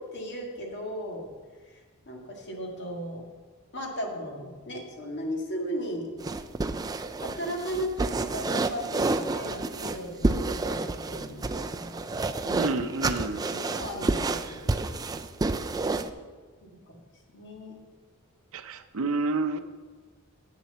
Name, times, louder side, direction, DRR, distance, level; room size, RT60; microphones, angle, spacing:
voice 1, 0.1-1.3 1.7-3.2 3.7-6.1 7.2-12.2 12.4-12.7 13.5-14.9 16.9-17.0 17.3-17.7, equal, 55° left, 1 dB, 1.8 m, -36 dB
sound 1, 6.2-16.1, right 3 dB, 15° right, 0.3 m, -29 dB
voice 2, 12.6-13.5 18.5-19.6, right 3 dB, 70° right, 11 dB, 0.6 m, -29 dB
8.3 x 7.2 x 6.8 m, 1.4 s
head